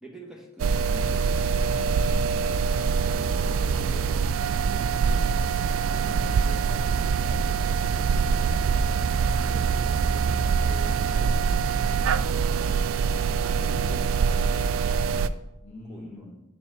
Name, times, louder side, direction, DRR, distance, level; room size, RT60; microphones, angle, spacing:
voice 1, 0.0-2.6 3.0-5.5 7.2-11.6 13.5-14.6 15.9-16.3, equal, 5° right, -1 dB, 1.0 m, -47 dB
sound 1, 0.6-15.3, right 5 dB, 90° right, 0.3 m, -24 dB
voice 2, 3.0-3.7 5.7-6.9 15.6-16.4, left 1 dB, 40° left, -1 dB, 2.1 m, -42 dB
6.9 x 3.5 x 5.5 m, 0.92 s
head